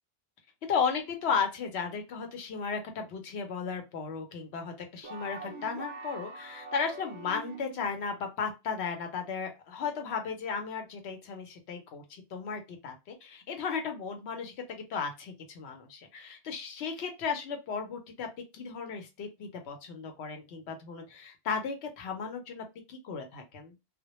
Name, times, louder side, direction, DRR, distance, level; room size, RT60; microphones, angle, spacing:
voice 1, 0.7-18.3 18.5-23.7, left 6 dB, 85° left, 4 dB, 0.9 m, -35 dB
sound 1, 5.0-7.9, right 3 dB, 60° right, 0.6 m, -43 dB
2.2 x 2.1 x 2.9 m, 0.24 s
omnidirectional pair, 1.1 m